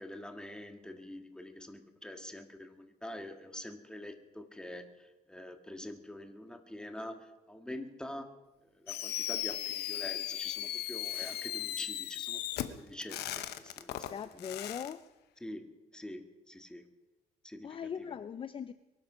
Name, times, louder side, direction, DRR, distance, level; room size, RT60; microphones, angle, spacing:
voice 1, 0.0-8.4 8.8-12.4 12.8-14.0 14.3-14.5 15.4-16.9 17.4-18.2, left 1 dB, 5° left, 1.8 m, -46 dB
Fireworks, 8.9-14.9, left 12 dB, 75° left, 1.0 m, -37 dB
sound 1, 10.6-12.8, right 1 dB, 10° right, 4.6 m, -60 dB
voice 2, 14.1-15.0 17.6-18.7, left 7 dB, 30° left, 0.5 m, -40 dB
23.0 x 12.0 x 5.1 m
cardioid pair, 110°, 17 cm